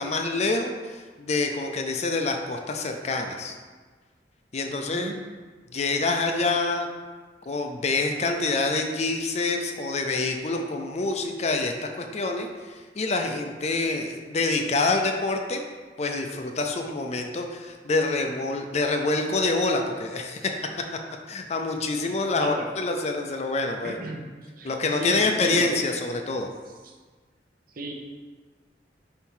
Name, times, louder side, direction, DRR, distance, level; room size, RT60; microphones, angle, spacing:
voice 1, 0.0-3.6 4.5-5.1 5.7-6.9 7.5-12.5 13.0-15.6 16.0-20.5 21.3-24.0 24.6-26.5, left 3 dB, 40° left, 4 dB, 0.5 m, -26 dB
voice 2, 4.7-5.2 22.4-22.7 23.8-24.3 24.5-25.7 26.8-26.9 27.7-27.9, right 1 dB, 55° right, 1 dB, 0.8 m, -35 dB
4.6 x 4.3 x 5.5 m, 1.4 s
head